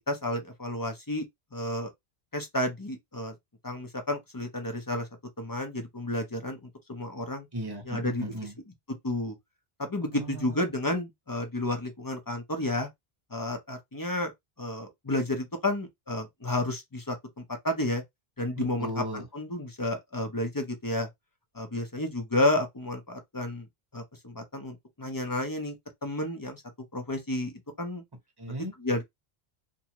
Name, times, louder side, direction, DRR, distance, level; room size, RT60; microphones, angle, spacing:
voice 1, 0.1-1.3 1.5-1.9 2.3-3.3 3.6-5.1 5.4-7.5 7.9-8.2 9.0-9.4 9.8-12.9 13.3-14.3 14.6-18.0 18.4-21.1 21.5-23.7 23.9-25.7 26.0-26.6 26.9-28.0 28.8-29.0, left 1 dB, 25° left, 0.5 m, -31 dB
voice 2, 7.5-8.5 10.1-10.6 18.6-19.3 28.4-28.7, right 1 dB, 25° right, 1.0 m, -36 dB
2.6 x 2.2 x 2.9 m
omnidirectional pair, 1.1 m